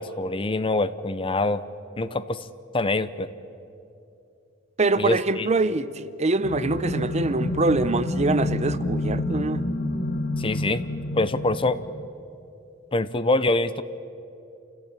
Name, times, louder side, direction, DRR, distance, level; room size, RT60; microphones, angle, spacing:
voice 1, 0.0-1.6 2.0-2.5 2.7-3.3 5.0-5.5 10.4-10.8 11.1-11.8 12.9-13.8, left 2 dB, 25° left, 14 dB, 0.6 m, -25 dB
voice 2, 4.8-9.7, right 3 dB, 35° right, 15 dB, 0.6 m, -24 dB
sound 1, 6.4-12.1, left 1 dB, 50° left, 1.7 m, -28 dB
28.0 x 16.5 x 8.9 m, 2.7 s
head